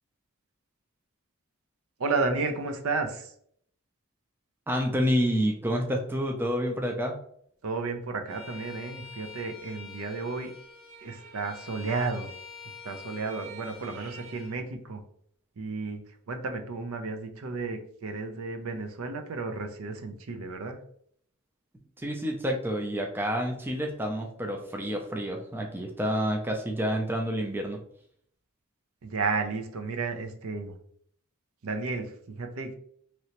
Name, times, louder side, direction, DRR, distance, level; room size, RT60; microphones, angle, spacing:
voice 1, 2.0-3.3 7.6-10.5 11.0-12.3 12.8-15.0 15.6-16.0 16.3-20.8 29.0-30.7 31.6-32.8, right 4 dB, 70° right, 6 dB, 0.5 m, -32 dB
voice 2, 4.7-7.2 22.0-27.8, equal, 10° right, 2 dB, 0.3 m, -28 dB
Bowed string instrument, 8.3-14.5, left 3 dB, 40° right, 1.0 m, -46 dB
3.1 x 2.8 x 2.8 m, 0.65 s
head